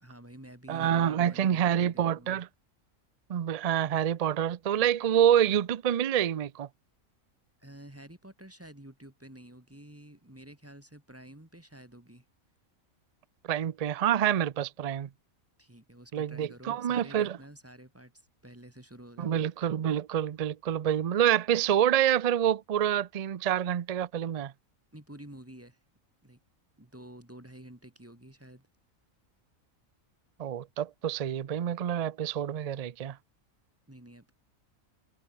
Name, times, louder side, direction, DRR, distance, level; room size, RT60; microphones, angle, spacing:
voice 1, 0.0-2.4 7.6-12.2 15.6-19.4 24.9-25.8 26.2-26.4 26.8-28.7 33.9-34.3, right 1 dB, 10° right, 2.1 m, -50 dB
voice 2, 0.7-2.5 3.3-6.7 13.5-15.1 16.1-17.4 19.2-24.5 30.4-33.2, right 10 dB, 65° right, 0.3 m, -27 dB
omnidirectional pair, 1.4 m